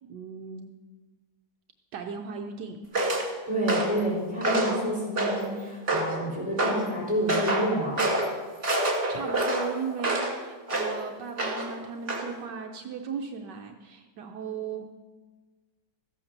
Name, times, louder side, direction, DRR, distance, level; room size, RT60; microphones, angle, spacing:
voice 1, 0.0-0.7 1.9-2.8 9.1-15.0, right 6 dB, 75° right, 4 dB, 1.4 m, -37 dB
sound 1, 2.9-3.3 3.7-4.0 4.4-4.8 5.2-5.5 5.9-6.2 6.6-6.8 7.3-7.7 8.0-8.3 8.6-10.3 10.7-11.0 11.4-11.7 12.1-12.3, right 1 dB, 40° right, 2.6 m, -26 dB
voice 2, 3.5-8.1, right 1 dB, 5° right, -3 dB, 4.9 m, -29 dB
14.5 x 8.4 x 6.6 m, 1.3 s
omnidirectional pair, 1.9 m